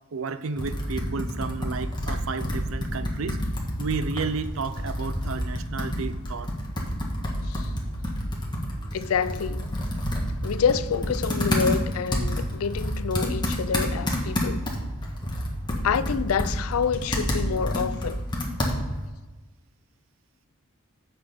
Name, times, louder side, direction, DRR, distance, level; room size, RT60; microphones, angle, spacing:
voice 1, 0.1-3.4 3.8-6.5, right 4 dB, 70° right, 0.5 m, -32 dB
Computer keyboard, 0.6-19.1, equal, 20° left, 1.5 m, -29 dB
voice 2, 8.9-9.7 10.4-14.6 15.8-18.2, left 6 dB, 90° left, 0.4 m, -27 dB
8.1 x 6.2 x 5.0 m
head